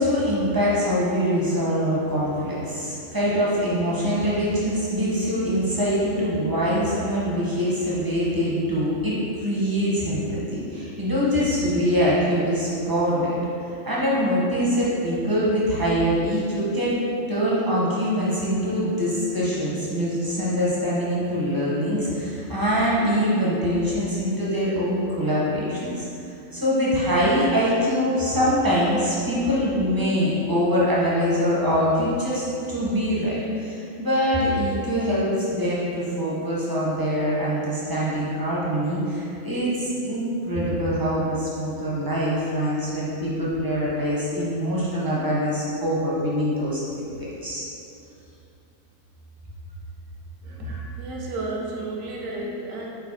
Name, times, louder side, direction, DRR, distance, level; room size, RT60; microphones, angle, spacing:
voice 1, 0.0-13.3 13.7-17.0 17.3-26.1 26.5-46.8 47.2-47.7 50.6-50.8, equal, 20° right, -8 dB, 0.6 m, -24 dB
voice 2, 50.4-52.9, right 2 dB, 80° right, -2 dB, 1.1 m, -32 dB
4.0 x 2.7 x 3.9 m, 2.7 s
omnidirectional pair, 1.4 m